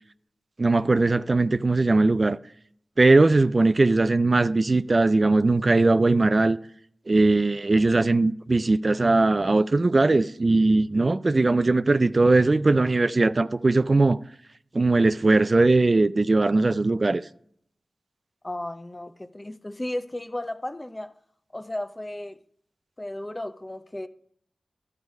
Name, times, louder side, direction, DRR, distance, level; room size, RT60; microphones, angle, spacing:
voice 1, 0.6-2.4 3.0-6.6 7.1-14.2 14.7-17.2, right 2 dB, 45° right, 0.3 m, -20 dB
voice 2, 18.4-21.2 21.5-22.4 23.0-24.1, left 1 dB, 25° left, 0.6 m, -34 dB
12.0 x 4.8 x 5.3 m
cardioid pair, 45°, 0 cm